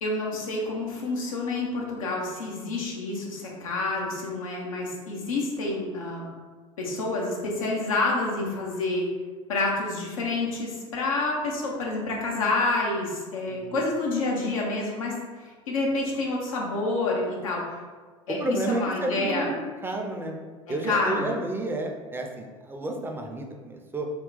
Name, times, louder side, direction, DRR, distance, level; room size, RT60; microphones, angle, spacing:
voice 1, 0.0-6.3 6.8-9.1 9.5-17.6 18.3-19.5 20.9-21.3, left 2 dB, 80° left, -2 dB, 0.9 m, -28 dB
voice 2, 13.5-13.8 18.3-19.5 19.8-20.4 20.7-24.1, right 2 dB, 15° right, 2 dB, 0.5 m, -31 dB
3.7 x 2.2 x 4.0 m, 1.4 s
hypercardioid pair, 75°, 17 cm